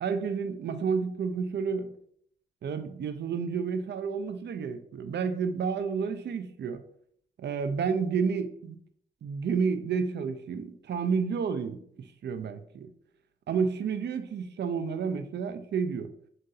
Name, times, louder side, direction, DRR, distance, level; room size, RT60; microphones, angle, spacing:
voice 1, 0.0-1.9 2.6-6.8 7.4-8.8 9.2-11.8 12.2-12.9 13.5-16.1, right 5 dB, 65° right, 0.5 m, -30 dB
7.6 x 2.6 x 2.7 m
cardioid pair, 60°, 19 cm